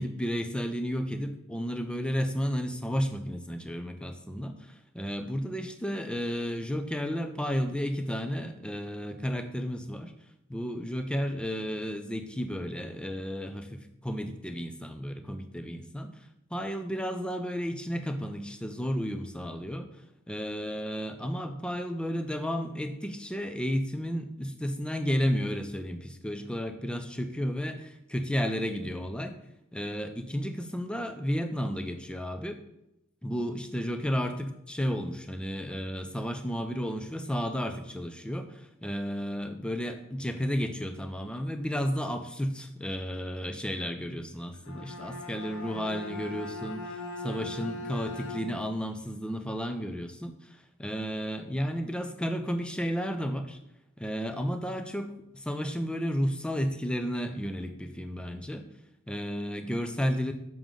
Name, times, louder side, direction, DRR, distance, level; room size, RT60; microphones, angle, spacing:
voice 1, 0.0-10.1 10.5-19.9 20.3-29.4 29.7-32.6 33.2-53.6 54.0-58.6 59.1-60.3, equal, 5° left, 7 dB, 0.5 m, -32 dB
Bowed string instrument, 44.5-48.8, left 2 dB, 90° left, 0.8 m, -40 dB
7.0 x 6.1 x 3.8 m, 0.84 s
head